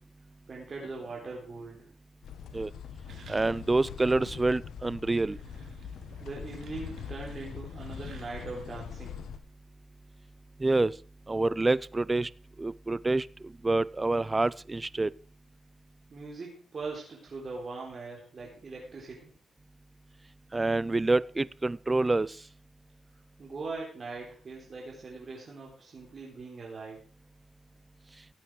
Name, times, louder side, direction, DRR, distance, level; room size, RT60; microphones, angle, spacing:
voice 1, 0.5-1.9 6.2-9.2 16.1-19.3 23.4-27.0, right 3 dB, 45° right, 3.8 m, -41 dB
sound 1, 2.2-9.4, left 7 dB, 85° left, 1.3 m, -43 dB
sound 2, 3.1-3.9 4.3-4.4 5.0-8.8, right 5 dB, 65° right, 2.9 m, -54 dB
voice 2, 3.3-5.4 10.6-11.0 11.3-12.3 12.6-13.3 13.6-15.1 20.5-22.4, right 2 dB, 20° right, 0.5 m, -27 dB
15.5 x 8.4 x 4.8 m
cardioid pair, 100°, 0 cm